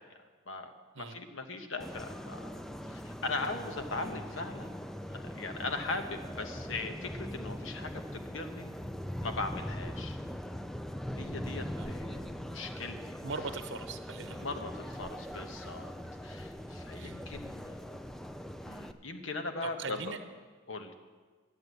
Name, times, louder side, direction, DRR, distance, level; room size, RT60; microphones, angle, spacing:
voice 1, 0.5-4.7 5.1-8.7 9.2-10.2 11.2-13.2 14.4-16.0 16.2-18.0 18.6-20.2 20.7-20.9, left 3 dB, 85° left, 6 dB, 1.2 m, -39 dB
sound 1, 1.8-18.9, equal, ahead, 0.4 m, -41 dB
voice 2, 13.2-14.5 16.9-17.2 19.6-20.2, right 4 dB, 65° right, 8 dB, 0.8 m, -40 dB
11.0 x 8.0 x 8.0 m, 1.4 s
head